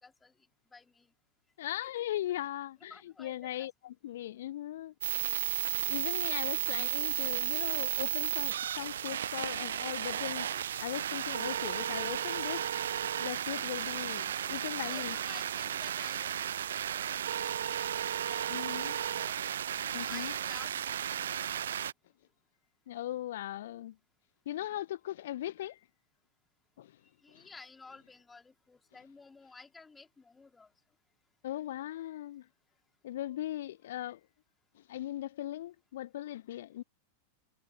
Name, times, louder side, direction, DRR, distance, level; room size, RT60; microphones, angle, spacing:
voice 1, 0.0-0.3 0.7-1.1 2.9-3.7 14.8-16.6 16.9-19.4 19.8-20.7 21.1-21.9 27.2-30.7, left 4 dB, 10° left, 3.2 m, -54 dB
voice 2, 1.6-4.9 5.9-12.7 13.2-15.2 18.5-19.0 19.9-20.3 22.9-23.9 24.5-25.8 26.8-27.0 27.3-27.5 31.4-32.5 33.0-34.2 34.7-36.8, left 13 dB, 60° left, 0.8 m, -39 dB
sound 1, 5.0-21.9, right 9 dB, 65° right, 0.5 m, -34 dB
figure-of-eight pair, 90°, 0 cm